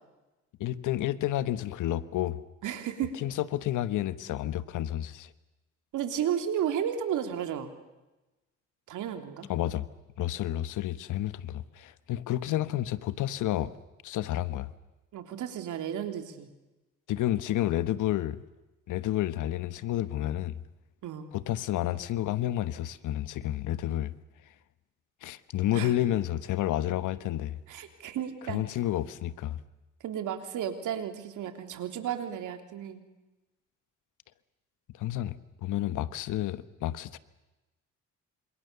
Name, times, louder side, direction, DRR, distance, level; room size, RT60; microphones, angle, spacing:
voice 1, 0.6-2.4 3.2-5.3 9.5-9.9 10.2-13.7 14.0-14.7 17.1-18.4 18.9-20.6 21.3-24.1 25.2-27.6 28.4-29.6 34.9-35.4 35.6-37.2, left 13 dB, 85° left, 1.3 m, -30 dB
voice 2, 2.6-3.1 5.9-7.7 8.9-9.5 15.1-16.5 21.0-21.3 25.7-25.9 27.7-28.6 30.0-33.0, right 9 dB, 80° right, 3.4 m, -33 dB
29.0 x 26.5 x 6.9 m
cardioid pair, 90°, 30 cm